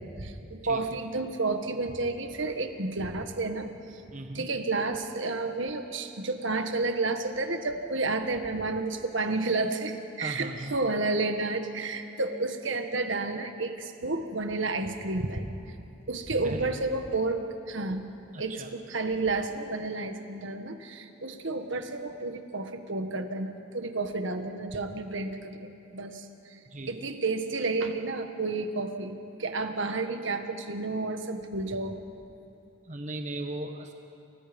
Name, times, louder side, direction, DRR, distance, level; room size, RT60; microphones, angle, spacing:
voice 1, 0.0-3.7 3.9-4.0 4.3-15.5 16.1-17.4 17.7-18.0 18.4-26.6 26.9-32.0, right 3 dB, 65° right, 6 dB, 1.6 m, -31 dB
voice 2, 4.1-4.5 10.2-10.7 16.4-16.7 18.3-18.7 26.7-26.9 32.8-33.9, right 2 dB, 35° right, 4 dB, 1.4 m, -37 dB
29.5 x 28.5 x 5.4 m, 2.8 s
head